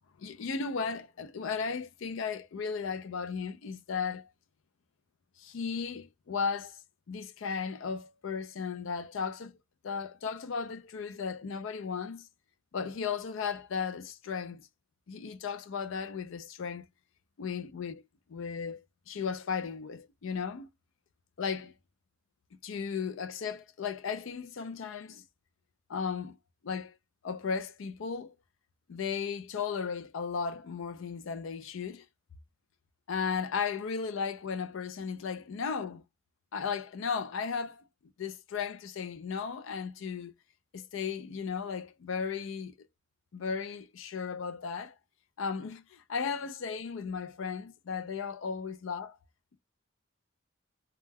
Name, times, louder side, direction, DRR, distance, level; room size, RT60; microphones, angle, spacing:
voice 1, 0.2-4.3 5.4-6.8 7.1-9.5 9.8-12.3 12.7-14.7 15.1-16.9 17.4-18.0 18.3-20.7 21.4-21.7 22.6-25.2 25.9-26.4 26.6-26.9 27.2-28.3 28.9-32.0 33.1-36.0 36.5-37.8 38.2-40.3 40.7-42.7 43.3-44.9 45.4-49.2, left 5 dB, 70° left, 0.4 m, -35 dB
2.2 x 2.1 x 3.3 m
head